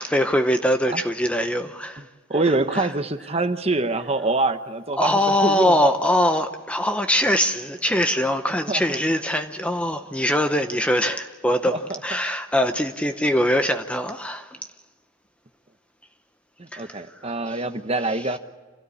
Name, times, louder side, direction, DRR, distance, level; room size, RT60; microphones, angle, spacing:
voice 1, 0.0-2.0 2.7-2.9 5.0-14.6 16.7-17.6 18.1-18.4, equal, 5° left, 0.7 m, -23 dB
voice 2, 2.3-5.9 8.7-9.0 11.7-12.0 16.6-18.4, right 2 dB, 25° right, 0.9 m, -25 dB
27.0 x 17.0 x 8.6 m
head